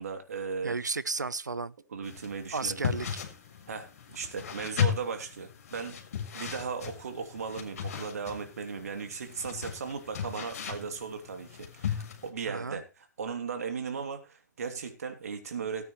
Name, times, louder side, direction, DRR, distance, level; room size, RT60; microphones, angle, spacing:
voice 1, 0.0-0.8 1.9-2.8 3.7-6.0 6.3-12.9 13.2-15.9, right 5 dB, 60° right, 3.0 m, -37 dB
voice 2, 0.6-1.7 2.5-3.2 12.5-12.8, right 4 dB, 75° right, 0.8 m, -33 dB
sound 1, 2.0-12.3, left 8 dB, 55° left, 3.7 m, -36 dB
18.0 x 9.2 x 3.2 m
figure-of-eight pair, 120°, 10 cm